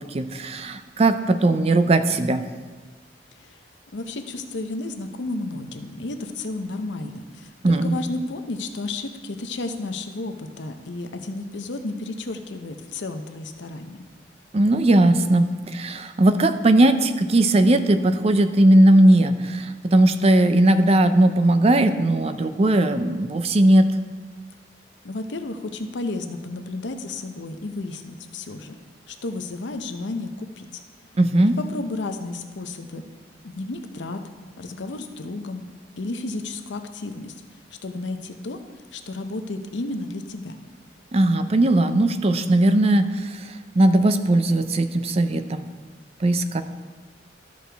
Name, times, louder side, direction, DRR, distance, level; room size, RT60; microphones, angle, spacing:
voice 1, 0.0-2.4 7.6-8.0 14.5-23.9 31.2-31.6 41.1-43.4 43.8-45.7 46.2-46.6, right 1 dB, 35° right, 10 dB, 0.4 m, -18 dB
voice 2, 3.9-14.1 25.0-28.8 29.1-30.8 31.4-33.0 33.4-34.2 34.6-35.6 36.0-37.3 37.8-38.6 38.9-40.6, left 2 dB, 80° left, 7 dB, 0.7 m, -32 dB
13.0 x 6.3 x 3.4 m, 1.4 s
head